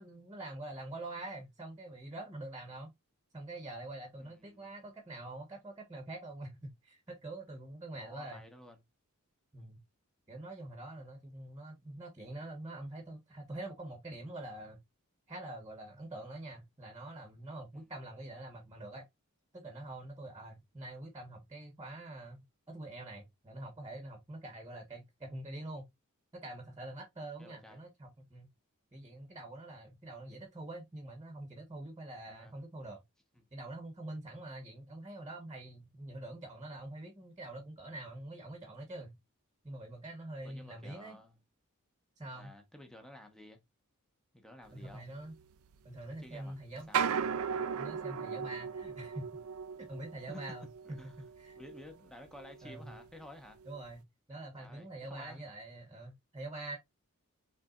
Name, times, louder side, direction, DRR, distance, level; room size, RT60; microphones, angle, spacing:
voice 1, 0.0-2.9 3.3-8.4 9.5-9.8 10.3-14.8 15.3-19.0 19.5-25.9 26.3-28.5 28.9-33.0 33.5-39.2 39.6-41.2 42.2-42.5 44.7-45.3 45.8-46.9 47.8-49.4 49.8-50.7 51.4-51.6 52.6-52.9 53.6-56.8, right 2 dB, 20° right, 1.2 m, -45 dB
voice 2, 4.2-4.7 8.0-8.8 11.7-12.0 17.7-17.9 27.4-27.8 32.3-32.6 40.4-41.4 42.3-43.6 44.3-45.1 46.2-46.6 46.9-47.1 50.3-51.2 51.5-53.6 54.6-55.5, left 1 dB, ahead, 1.1 m, -53 dB
sound 1, 44.9-45.0 45.3-46.3 46.8-52.1 52.4-53.1 53.6-53.8, right 7 dB, 70° right, 0.5 m, -37 dB
6.0 x 3.4 x 2.4 m
head